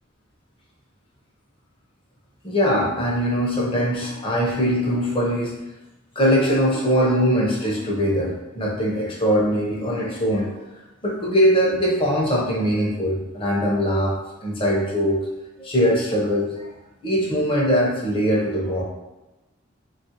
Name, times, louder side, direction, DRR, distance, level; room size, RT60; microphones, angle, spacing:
voice 1, 2.4-5.5 6.2-10.5 11.0-14.1 14.4-15.2 15.6-16.7 17.0-18.8, equal, 25° left, -4 dB, 0.6 m, -21 dB
3.3 x 2.4 x 2.8 m, 1.0 s
head